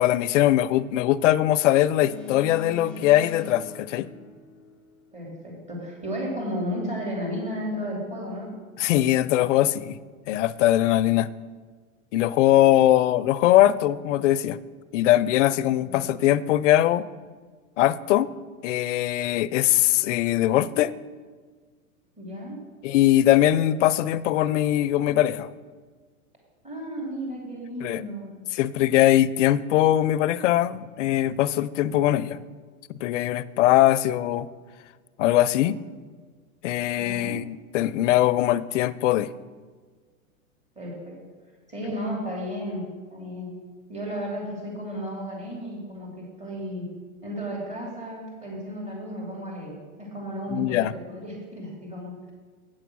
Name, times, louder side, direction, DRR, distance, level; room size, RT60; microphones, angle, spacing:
voice 1, 0.0-4.1 8.8-10.0 10.3-11.3 12.1-14.6 14.9-17.0 17.8-18.3 18.6-20.9 22.8-25.5 27.8-28.0 28.5-32.4 33.0-34.5 35.2-35.8 36.6-39.3 50.5-50.9, left 13 dB, 55° left, 17 dB, 0.5 m, -21 dB
Boat Water vehicle, 2.0-5.1, left 8 dB, 5° left, 0.4 m, -42 dB
voice 2, 5.1-8.5 15.8-16.1 22.2-22.6 26.6-28.3 37.0-37.4 40.8-41.1 41.7-42.8 43.1-43.5 43.9-46.9 47.2-52.1, equal, 15° right, -2 dB, 2.8 m, -33 dB
8.7 x 6.9 x 6.1 m, 1.5 s
hypercardioid pair, 135°, 44 cm